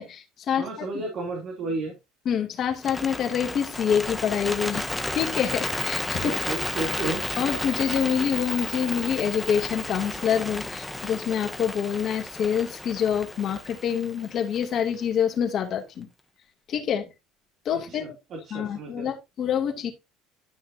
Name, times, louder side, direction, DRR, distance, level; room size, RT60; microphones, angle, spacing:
voice 1, 0.0-1.0 2.3-4.8 5.1-6.3 7.4-16.1 16.7-17.1 17.6-18.2 18.5-19.9, left 8 dB, 50° left, 2.5 m, -26 dB
voice 2, 0.6-1.9 6.2-7.2 17.9-19.1, right 3 dB, 50° right, 3.0 m, -32 dB
Bird, 2.7-14.9, left 1 dB, 10° left, 1.1 m, -32 dB
12.5 x 5.8 x 2.8 m
supercardioid pair, 80°, 0 cm